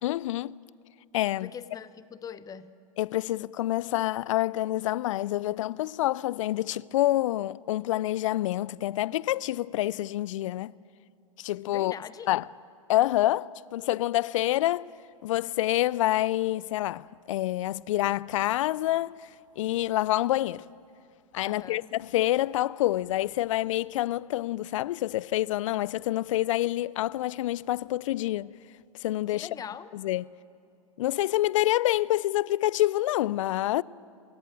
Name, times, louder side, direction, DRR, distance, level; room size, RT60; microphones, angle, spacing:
voice 1, 0.0-0.6 1.1-1.5 3.0-10.7 11.4-11.9 12.3-12.5 12.9-14.9 15.2-19.3 19.6-20.6 21.3-28.5 29.0-29.5 29.9-30.3 31.0-33.8, left 15 dB, 60° left, 0.5 m, -27 dB
voice 2, 1.4-2.7 11.7-12.3 21.4-21.9 29.3-29.9, left 8 dB, 20° left, 0.9 m, -42 dB
28.0 x 14.5 x 9.0 m
hypercardioid pair, 110°, 19 cm